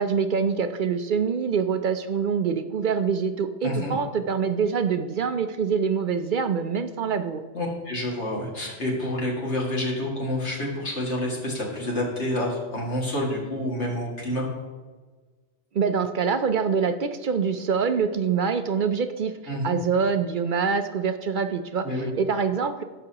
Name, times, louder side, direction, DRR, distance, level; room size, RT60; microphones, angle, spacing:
voice 1, 0.0-7.4 15.7-19.3 19.6-21.9 22.2-22.8, right 6 dB, 55° right, 9 dB, 0.6 m, -25 dB
voice 2, 3.6-3.9 7.5-14.5 19.5-19.8 21.8-22.1, left 1 dB, 65° left, -3 dB, 2.4 m, -28 dB
16.5 x 6.1 x 2.9 m, 1.3 s
omnidirectional pair, 1.2 m